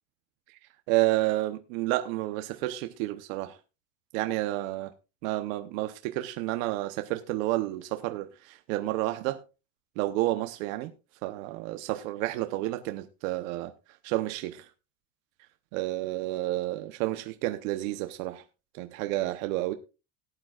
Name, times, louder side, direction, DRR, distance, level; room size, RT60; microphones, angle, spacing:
voice 1, 0.9-3.6 4.1-4.9 5.2-9.4 10.0-10.9 11.2-13.7 14.0-14.7 15.7-18.4 18.7-19.7, right 17 dB, 85° right, 1.0 m, -30 dB
18.5 x 9.0 x 2.4 m
cardioid pair, 170°, 39 cm